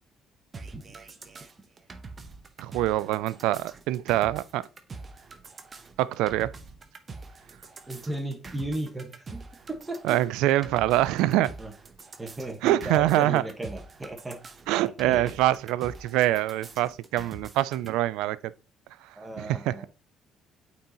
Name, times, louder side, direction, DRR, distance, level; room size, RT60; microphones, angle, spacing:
sound 1, 0.5-17.9, right 4 dB, 40° right, 0.9 m, -45 dB
voice 1, 2.6-4.6 6.0-6.5 10.0-11.5 12.6-13.4 14.7-18.4 19.4-19.7, right 15 dB, 80° right, 0.3 m, -24 dB
voice 2, 7.9-9.4 9.7-10.2 11.6-11.7 12.2-14.4 15.0-15.3 19.1-19.9, right 1 dB, 20° right, 1.4 m, -35 dB
8.6 x 4.1 x 2.9 m
supercardioid pair, 65°, 0 cm